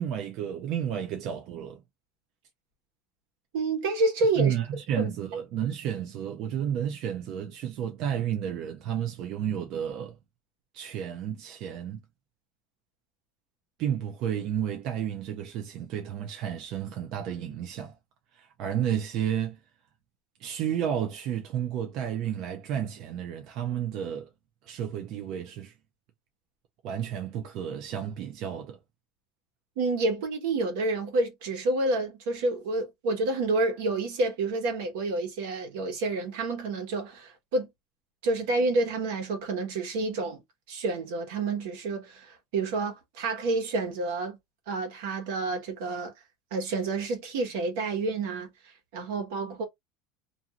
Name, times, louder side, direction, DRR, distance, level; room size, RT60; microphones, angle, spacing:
voice 1, 0.0-1.8 4.4-10.2 10.7-12.0 13.8-17.9 18.3-19.6 20.4-24.3 24.7-25.7 26.8-28.8, right 9 dB, 40° right, 0.4 m, -31 dB
voice 2, 3.5-4.5 4.9-5.1 29.8-37.7 38.2-40.4 40.7-44.4 44.7-46.1 46.5-48.5 48.9-49.6, right 2 dB, 70° right, 1.1 m, -29 dB
2.6 x 2.4 x 2.7 m
cardioid pair, 180°, 0 cm